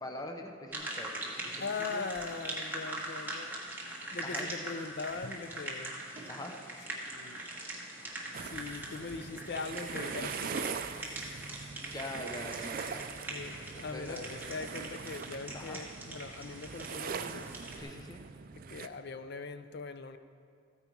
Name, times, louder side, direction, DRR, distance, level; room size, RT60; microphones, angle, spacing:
voice 1, 0.0-2.1 4.2-4.5 6.3-6.5 11.9-13.1 13.9-14.2 15.5-15.8 17.8-18.2, left 1 dB, 20° left, 0.7 m, -43 dB
sound 1, 0.7-17.8, right 1 dB, 10° right, 1.5 m, -42 dB
voice 2, 1.6-3.6 4.1-6.0 6.9-7.4 8.4-10.8 13.3-17.5 18.7-20.2, left 4 dB, 55° left, 0.5 m, -41 dB
sound 2, 8.3-18.9, right 6 dB, 45° right, 0.4 m, -42 dB
14.5 x 9.1 x 4.6 m
head